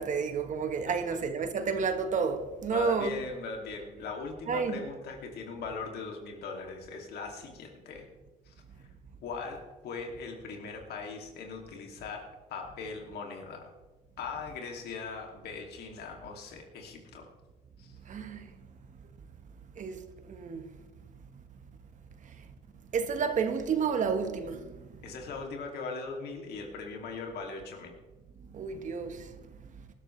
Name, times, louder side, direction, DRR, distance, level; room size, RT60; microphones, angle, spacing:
voice 1, 0.0-3.2 4.5-4.8 18.1-18.5 19.8-20.7 22.2-22.3 22.9-24.9 28.5-29.3, right 5 dB, 45° right, 1.4 m, -31 dB
voice 2, 2.7-8.1 8.5-8.9 9.2-13.7 14.2-17.3 17.8-17.9 25.0-27.9, left 4 dB, 70° left, 2.6 m, -40 dB
19.0 x 12.5 x 3.3 m
cardioid pair, 110°, 17 cm